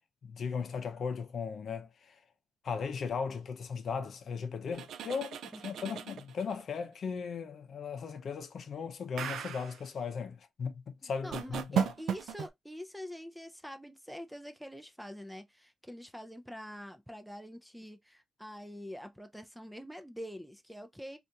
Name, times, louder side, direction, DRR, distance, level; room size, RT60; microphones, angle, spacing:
voice 1, 0.2-2.2 2.6-11.9, left 5 dB, 60° left, 0.6 m, -37 dB
sound 1, 4.7-6.6 9.2-9.8 11.3-12.5, right 8 dB, 85° right, 0.4 m, -35 dB
voice 2, 5.5-6.0 11.0-21.2, equal, ahead, 0.4 m, -46 dB
3.3 x 2.5 x 2.7 m
cardioid pair, 120°, 0 cm